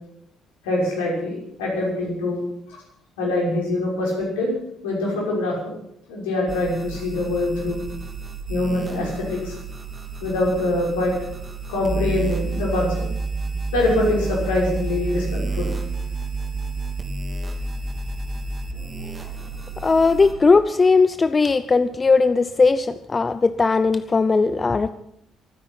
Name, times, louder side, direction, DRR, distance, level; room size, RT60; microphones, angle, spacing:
voice 1, 0.6-2.4 2.7-2.8 3.2-4.5 4.8-5.6 6.1-7.8 8.5-9.5 10.2-11.1 11.7-13.0 13.7-15.7, left 2 dB, 80° left, -2 dB, 6.1 m, -24 dB
sound 1, 6.5-20.3, right 3 dB, 35° right, 3.1 m, -30 dB
voice 2, 19.8-24.9, left 4 dB, 30° left, 13 dB, 0.7 m, -18 dB
24.0 x 9.9 x 6.1 m, 0.75 s
hypercardioid pair, 50°, 0 cm